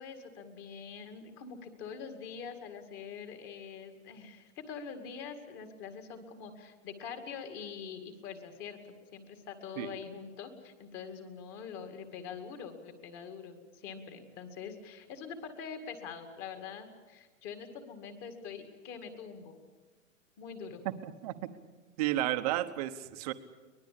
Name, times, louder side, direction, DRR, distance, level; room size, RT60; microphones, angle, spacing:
voice 1, 0.0-8.8 9.1-19.6 20.4-20.8, left 6 dB, 25° left, 7 dB, 2.2 m, -44 dB
voice 2, 21.0-21.3 22.0-23.3, right 14 dB, 30° right, 11 dB, 1.1 m, -32 dB
23.5 x 20.5 x 8.6 m, 1.3 s
hypercardioid pair, 165°, 40 cm